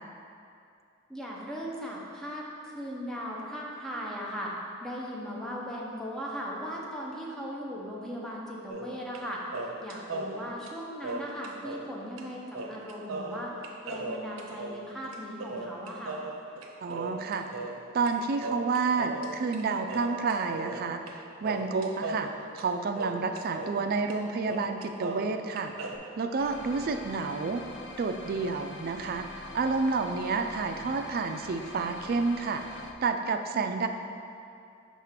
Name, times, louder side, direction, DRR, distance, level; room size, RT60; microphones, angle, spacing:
voice 1, 1.1-4.5 4.8-9.4 9.8-13.5 13.8-16.2 33.5-33.6, equal, 5° left, -4 dB, 0.7 m, -38 dB
sound 1, 8.7-9.2 9.5-11.9 12.2-12.3 12.5-18.1 18.4-19.6 19.9-21.2 21.4-23.8 24.1-24.2 24.5-26.0, right 2 dB, 85° right, 0.6 m, -37 dB
voice 2, 16.8-17.6 17.9-22.3 22.5-25.7 26.2-27.6 28.0-29.3 29.5-33.9, right 4 dB, 45° right, 6 dB, 0.4 m, -30 dB
sound 2, 26.4-32.9, left 3 dB, 60° left, 0.5 m, -45 dB
5.6 x 3.6 x 5.7 m, 2.5 s
head